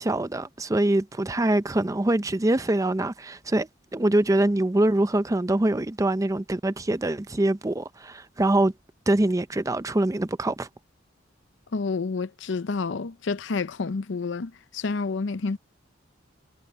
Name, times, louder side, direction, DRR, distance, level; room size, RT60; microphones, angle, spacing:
voice 1, 0.0-8.7 9.1-10.7, right 1 dB, 15° right, 0.5 m, -24 dB
voice 2, 11.7-15.6, left 4 dB, 65° left, 0.6 m, -29 dB
head